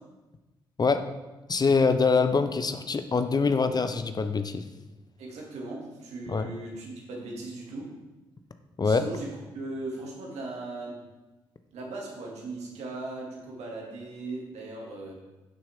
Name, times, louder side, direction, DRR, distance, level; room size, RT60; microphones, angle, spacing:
voice 1, 1.5-4.6 6.3-6.5 8.8-9.0, left 4 dB, 35° left, 9 dB, 0.8 m, -24 dB
voice 2, 5.2-7.9 8.8-11.0 11.7-15.1, right 2 dB, 65° right, -2 dB, 2.5 m, -38 dB
10.5 x 7.3 x 3.7 m, 1.1 s
hypercardioid pair, 40°, 12 cm